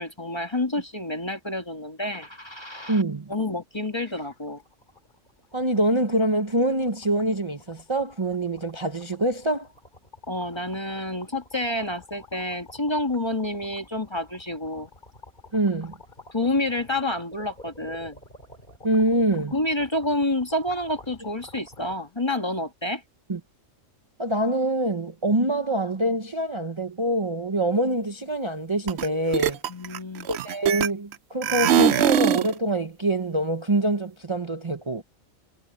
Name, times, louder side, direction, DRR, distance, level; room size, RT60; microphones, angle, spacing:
voice 1, 0.0-3.0 3.3-4.6 10.3-14.9 16.3-18.2 19.5-23.0 29.7-30.3, left 1 dB, 20° left, 1.6 m, -28 dB
sound 1, 2.9-3.0 3.4-3.5 3.7-22.0, left 2 dB, 40° left, 4.7 m, -50 dB
voice 2, 2.9-3.3 5.5-9.7 15.5-15.9 18.8-19.5 23.3-23.4 24.2-29.6 30.3-35.0, right 1 dB, 25° right, 1.0 m, -25 dB
sound 2, 28.9-29.1 29.3-31.1 31.4-32.5, right 10 dB, 65° right, 0.8 m, -21 dB
omnidirectional pair, 1.3 m